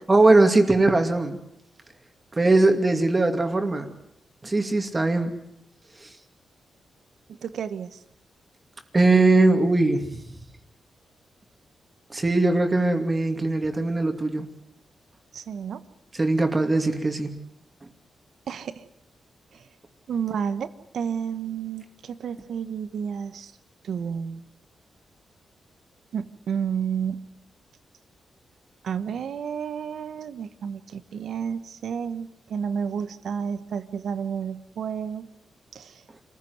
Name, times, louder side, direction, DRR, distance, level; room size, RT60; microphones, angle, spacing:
voice 1, 0.1-1.4 2.3-3.9 4.4-5.3 6.0-6.1 8.9-10.1 12.1-14.5 16.2-17.4, right 2 dB, 25° right, 5 dB, 2.5 m, -20 dB
voice 2, 7.4-8.0 15.3-15.9 18.5-18.8 20.1-23.5 23.8-24.4 26.1-27.3 28.8-35.3 35.7-36.0, right 7 dB, 75° right, 12 dB, 1.2 m, -31 dB
26.5 x 15.5 x 9.5 m, 0.81 s
cardioid pair, 95°, 0 cm